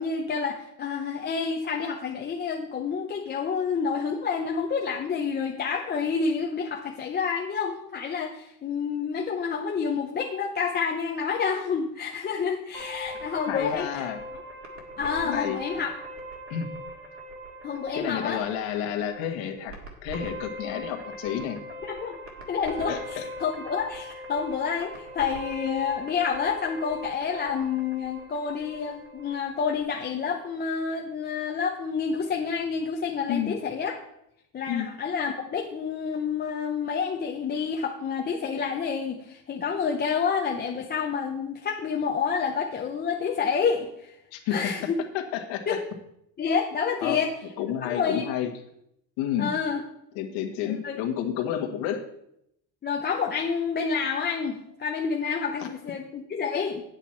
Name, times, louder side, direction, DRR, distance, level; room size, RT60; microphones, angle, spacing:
voice 1, 0.0-14.0 15.0-15.9 17.6-18.4 21.9-22.2 22.5-23.0 23.4-34.0 34.5-44.1 44.5-45.0 45.7-45.8 46.4-47.3 47.8-48.2 49.4-49.8 50.6-51.0 52.8-56.8, left 6 dB, 20° left, 0 dB, 0.6 m, -28 dB
sound 1, 12.7-29.8, equal, 30° right, 1.8 m, -41 dB
voice 2, 13.5-14.2 15.2-15.6 16.5-16.7 17.9-19.7 20.0-21.6 22.9-23.2 33.3-33.6 34.7-34.9 44.3-45.8 47.0-47.2 47.6-48.5 49.2-49.5 50.2-52.0 55.6-55.7, left 9 dB, 75° left, 4 dB, 1.7 m, -30 dB
9.1 x 8.2 x 4.4 m, 0.77 s
cardioid pair, 155°, 46 cm